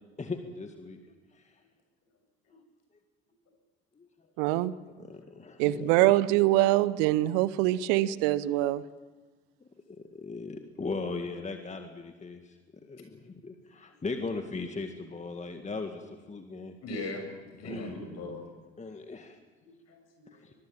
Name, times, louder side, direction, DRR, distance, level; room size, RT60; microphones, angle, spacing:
voice 1, 0.2-1.0 1.3-1.5 4.0-4.1 5.0-6.1 9.6-12.6 12.9-16.7 17.6-18.0 18.8-19.4 20.4-20.5, left 3 dB, 20° left, 6 dB, 2.0 m, -38 dB
voice 2, 4.4-4.7 5.6-8.8, right 16 dB, 65° right, 18 dB, 0.8 m, -24 dB
voice 3, 16.8-18.4 19.6-20.4, left 2 dB, 55° left, 5 dB, 7.3 m, -39 dB
23.5 x 22.5 x 7.4 m, 1.3 s
figure-of-eight pair, 55°, 32 cm